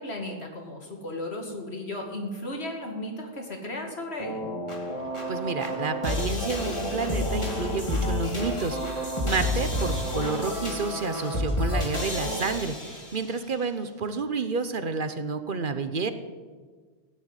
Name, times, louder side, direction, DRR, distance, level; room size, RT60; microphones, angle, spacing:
voice 1, 0.0-4.5, left 1 dB, 85° left, 2 dB, 2.7 m, -35 dB
sound 1, 4.2-13.4, left 1 dB, 30° left, 2.6 m, -30 dB
voice 2, 5.3-16.1, right 4 dB, 55° right, 10 dB, 1.1 m, -30 dB
15.5 x 9.1 x 9.1 m, 1.5 s
omnidirectional pair, 1.1 m